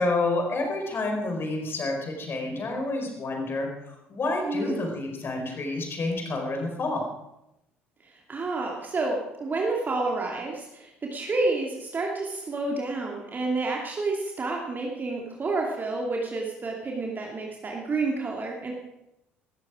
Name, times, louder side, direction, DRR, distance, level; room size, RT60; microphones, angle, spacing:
voice 1, 0.0-3.7 4.1-7.0, left 2 dB, 35° left, 2 dB, 4.8 m, -29 dB
voice 2, 4.4-4.8 8.3-18.7, right 3 dB, 30° right, -1 dB, 2.6 m, -29 dB
17.0 x 14.5 x 4.9 m, 0.87 s
figure-of-eight pair, 55°, 6 cm